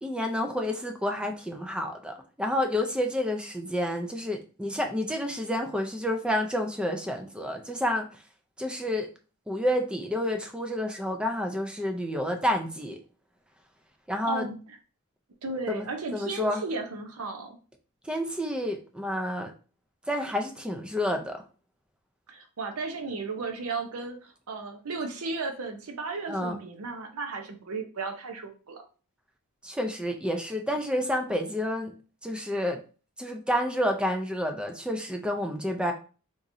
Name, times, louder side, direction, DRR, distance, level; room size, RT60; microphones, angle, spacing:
voice 1, 0.0-8.1 8.6-9.1 9.5-13.0 14.1-14.4 15.7-15.9 16.1-16.6 18.0-19.5 20.1-21.4 26.3-26.6 29.6-32.0 32.2-32.8 33.2-35.9, left 1 dB, 5° right, 4 dB, 0.4 m, -29 dB
voice 2, 14.3-14.6 15.4-17.6 22.3-28.8, right 4 dB, 90° right, 5 dB, 0.7 m, -34 dB
3.7 x 2.9 x 2.6 m, 0.37 s
head